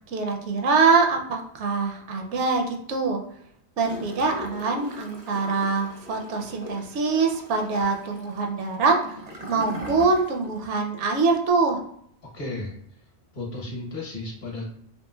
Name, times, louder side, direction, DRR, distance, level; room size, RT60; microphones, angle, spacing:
voice 1, 0.1-3.2 3.8-9.0 9.5-11.8, right 4 dB, 80° right, 2 dB, 0.9 m, -24 dB
Gurgling / Toilet flush, 3.8-10.6 10.9-11.0, equal, 50° right, 0.5 m, -40 dB
voice 2, 12.3-12.7 13.3-14.7, left 2 dB, 50° left, -3 dB, 0.9 m, -33 dB
3.0 x 2.8 x 2.2 m, 0.68 s
omnidirectional pair, 1.2 m